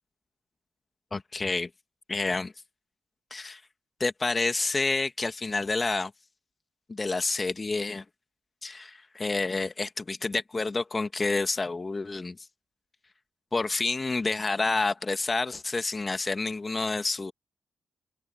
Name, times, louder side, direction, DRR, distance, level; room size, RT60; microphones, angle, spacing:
voice 1, 1.1-1.7 2.1-2.5 3.3-3.6 4.0-6.1 6.9-8.0 8.6-12.5 13.5-17.3, left 3 dB, 35° left, 2.1 m, -29 dB
open air
hypercardioid pair, 40°, 0 cm